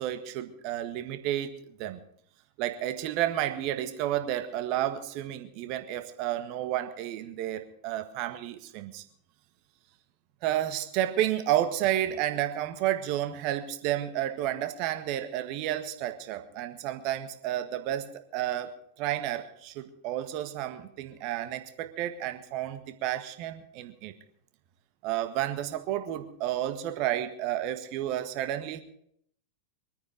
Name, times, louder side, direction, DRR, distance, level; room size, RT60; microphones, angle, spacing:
voice 1, 0.0-2.0 2.6-9.0 10.4-18.1 18.3-24.1 25.0-28.8, right 12 dB, 45° right, 8 dB, 1.7 m, -31 dB
23.5 x 9.5 x 5.2 m, 0.68 s
figure-of-eight pair, 90°, 0 cm